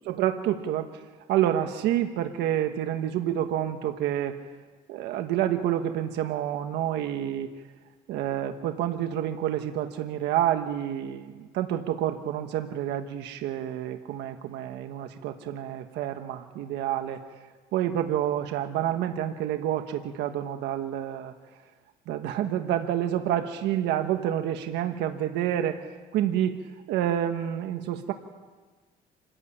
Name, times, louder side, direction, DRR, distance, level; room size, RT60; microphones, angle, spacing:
voice 1, 0.1-1.0 1.3-4.4 4.9-7.5 8.1-17.2 17.7-21.3 22.1-25.8 26.1-26.6 26.9-28.1, right 11 dB, 85° right, 6 dB, 1.4 m, -28 dB
26.0 x 14.5 x 10.0 m, 1.4 s
cardioid pair, 110°, 17 cm